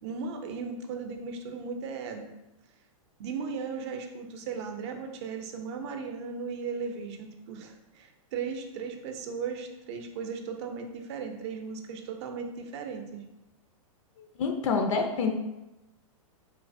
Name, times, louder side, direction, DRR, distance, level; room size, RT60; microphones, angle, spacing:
voice 1, 0.0-2.3 3.2-13.2, right 5 dB, 50° right, 4 dB, 0.6 m, -36 dB
voice 2, 14.2-15.3, left 4 dB, 65° left, 4 dB, 0.4 m, -27 dB
3.2 x 3.1 x 2.5 m, 0.94 s
hypercardioid pair, 140°, 18 cm